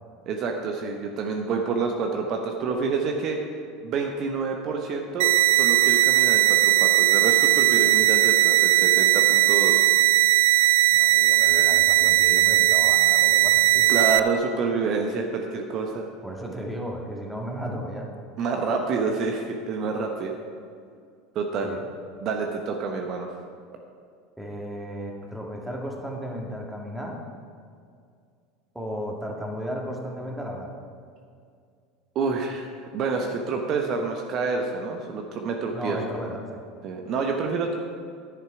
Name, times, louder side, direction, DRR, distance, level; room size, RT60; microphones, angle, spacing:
voice 1, 0.3-3.4 3.8-9.8 13.9-16.1 18.4-20.4 21.3-21.8 22.2-23.3 32.1-32.7 32.9-36.0 36.8-37.7, right 4 dB, 45° right, 2 dB, 1.0 m, -28 dB
sound 1, 5.2-14.2, right 16 dB, 70° right, 0.3 m, -18 dB
voice 2, 10.5-13.9 16.2-18.1 21.6-21.8 24.4-27.2 28.7-30.7 35.7-36.6, equal, 5° right, -1 dB, 2.0 m, -34 dB
10.5 x 9.6 x 4.9 m, 2.3 s
hypercardioid pair, 75°, 0 cm